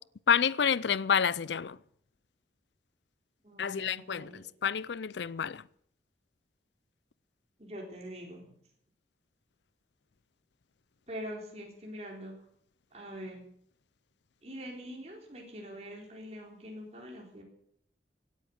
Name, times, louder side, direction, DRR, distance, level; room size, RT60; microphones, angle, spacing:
voice 1, 0.3-1.8 3.6-5.6, left 7 dB, 80° left, 0.5 m, -29 dB
voice 2, 3.4-4.4 7.6-8.4 11.1-12.3 12.9-13.4 14.4-17.4, equal, 35° right, 3.9 m, -44 dB
17.0 x 9.7 x 8.0 m
head